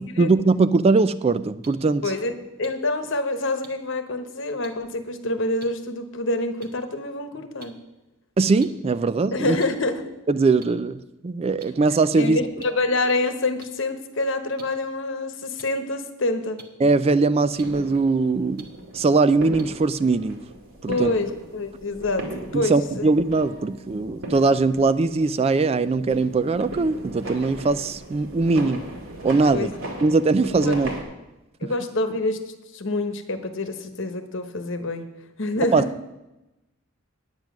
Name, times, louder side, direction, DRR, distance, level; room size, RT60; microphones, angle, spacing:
voice 1, 0.0-2.0 8.4-9.6 10.3-12.4 16.8-18.7 18.9-20.4 20.8-21.1 22.5-28.8 29.2-29.7 30.0-30.9 31.6-31.7 35.7-35.8, right 3 dB, 30° right, 14 dB, 0.3 m, -21 dB
sound 1, 1.6-1.7 2.6-2.7 3.6-3.7 4.6-4.7 5.6-5.7 6.6-6.7 7.6-7.7 8.6-8.7 9.6-9.7 10.6-10.7 11.6-11.7 12.6-12.7 13.6-13.7 14.6-14.7 15.6-15.7 16.6-16.7 17.6-17.7 18.6-18.7 19.6-19.7, right 5 dB, 45° right, 1.2 m, -43 dB
voice 2, 2.0-2.3 2.6-7.7 9.3-10.1 12.2-16.6 20.9-23.1 29.5-29.8 30.6-30.8 31.6-35.1 35.4-35.8, left 2 dB, 65° left, 8 dB, 1.1 m, -26 dB
sound 2, 17.5-31.0, right 1 dB, 75° right, 2.2 m, -38 dB
9.4 x 9.0 x 6.0 m, 0.99 s
head